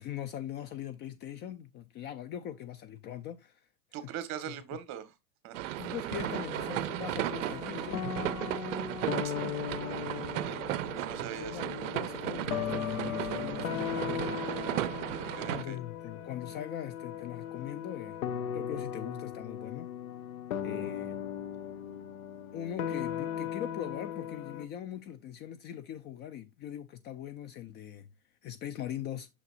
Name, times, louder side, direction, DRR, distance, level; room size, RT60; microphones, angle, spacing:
voice 1, 0.0-3.6 4.0-4.1 4.5-4.8 5.8-8.1 11.3-14.3 15.5-18.2 18.5-19.9 20.6-21.2 22.5-28.1 28.4-29.3, left 10 dB, 25° left, 0.5 m, -41 dB
voice 2, 3.9-5.1 5.4-5.6 9.2-9.3 10.2-10.6 10.9-11.7 15.4-15.8, right 10 dB, 40° right, 1.4 m, -41 dB
sound 1, 5.5-15.6, right 14 dB, 60° right, 0.6 m, -35 dB
sound 2, 6.2-24.7, left 9 dB, 70° left, 1.1 m, -38 dB
6.6 x 6.5 x 2.5 m
hypercardioid pair, 110°, 43 cm